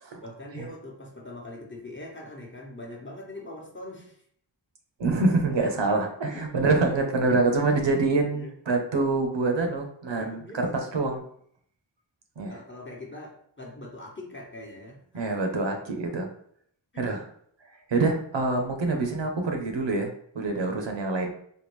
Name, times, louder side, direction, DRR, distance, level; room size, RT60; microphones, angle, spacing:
voice 1, 0.2-4.2 6.3-6.5 7.2-7.4 8.3-8.6 10.2-10.9 12.5-15.4 16.9-17.1, left 1 dB, 25° left, -2 dB, 1.0 m, -42 dB
voice 2, 5.0-10.7 10.9-11.2 12.4-12.6 15.1-16.3 17.0-17.2 17.9-21.3, right 3 dB, 65° right, 3 dB, 0.7 m, -26 dB
3.4 x 2.3 x 3.1 m, 0.64 s
wide cardioid pair, 50°, 47 cm